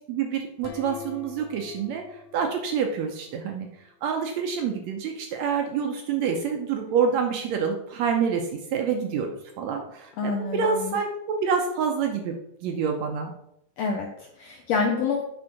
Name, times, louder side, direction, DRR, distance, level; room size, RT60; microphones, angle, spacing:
voice 1, 0.1-3.7 4.0-9.3 9.6-13.3, right 6 dB, 80° right, 4 dB, 1.6 m, -27 dB
sound 1, 0.6-3.4, left 6 dB, 70° left, 2.2 m, -45 dB
voice 2, 10.2-11.0 13.8-15.2, left 4 dB, 90° left, 2 dB, 1.4 m, -27 dB
7.9 x 3.6 x 5.9 m, 0.77 s
omnidirectional pair, 3.9 m